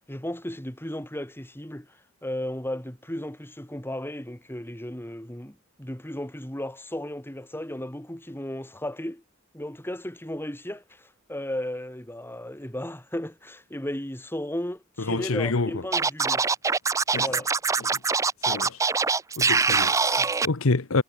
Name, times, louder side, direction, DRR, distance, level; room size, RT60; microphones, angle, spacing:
voice 1, 0.1-1.9 2.2-9.2 9.5-16.4 17.2-17.5, left 1 dB, 10° left, 2.5 m, -35 dB
voice 2, 15.0-15.8 17.1-17.4 17.8-18.0 18.5-18.8 19.4-21.0, left 3 dB, 65° left, 1.1 m, -27 dB
Scratching (performance technique), 15.9-20.5, right 4 dB, 15° right, 0.4 m, -23 dB
head